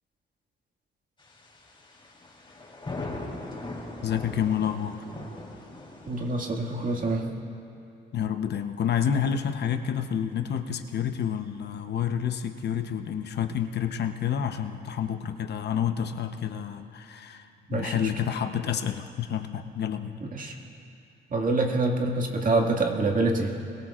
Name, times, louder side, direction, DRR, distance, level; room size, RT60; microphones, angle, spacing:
sound 1, 1.3-7.2, left 2 dB, 25° left, 3.4 m, -40 dB
voice 1, 4.0-5.0 8.1-20.2, left 8 dB, 60° left, 8 dB, 0.8 m, -29 dB
voice 2, 6.1-7.3 17.7-18.1 20.2-20.6 21.3-23.5, right 2 dB, 40° right, 1 dB, 2.0 m, -26 dB
22.5 x 18.0 x 2.5 m, 2.6 s
cardioid pair, 90°, 20 cm